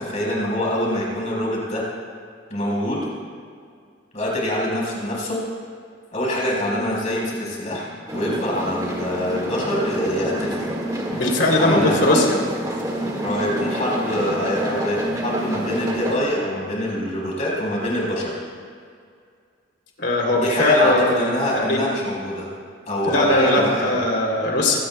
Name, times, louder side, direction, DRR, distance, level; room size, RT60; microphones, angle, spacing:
voice 1, 0.0-1.9 2.5-3.1 4.1-5.4 6.1-10.7 11.6-12.3 13.2-18.4 20.4-22.5 22.9-23.9, left 1 dB, 40° left, -3 dB, 4.3 m, -25 dB
sound 1, 8.1-16.2, right 1 dB, 20° right, 1.7 m, -28 dB
voice 2, 11.1-12.4 20.0-21.8 23.0-24.8, left 1 dB, 60° left, 0 dB, 3.1 m, -19 dB
23.5 x 17.5 x 2.3 m, 2.2 s
head